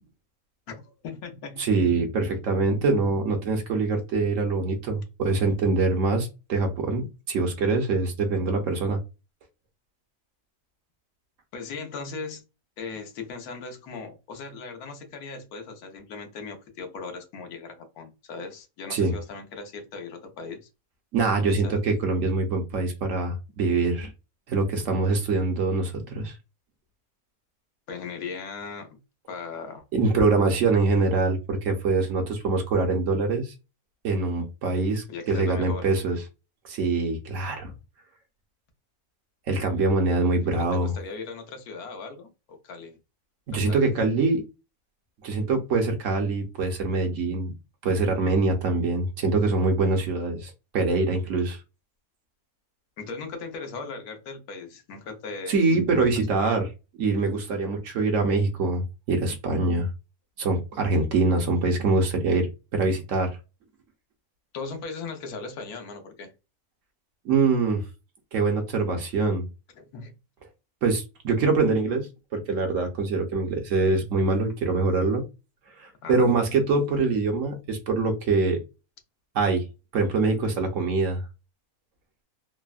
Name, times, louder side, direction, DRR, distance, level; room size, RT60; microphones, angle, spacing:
voice 1, 0.7-1.7 11.5-12.4 12.8-20.7 21.5-21.8 27.9-29.0 29.3-29.8 35.1-35.9 40.4-43.0 43.5-43.9 53.0-55.6 56.1-56.5 64.5-66.3 69.7-70.1 76.0-76.3, left 4 dB, 85° left, 1.2 m, -38 dB
voice 2, 1.6-9.0 18.9-19.1 21.1-24.1 24.5-26.4 29.9-33.5 34.0-36.2 36.6-37.7 39.5-40.9 43.5-44.4 45.2-47.5 47.8-51.6 55.5-56.7 57.0-59.9 60.4-63.4 67.2-67.9 68.3-69.4 70.8-75.2 75.8-78.6 79.3-79.7 79.9-81.2, right 3 dB, 65° right, 1.0 m, -24 dB
3.3 x 2.1 x 2.3 m
omnidirectional pair, 1.6 m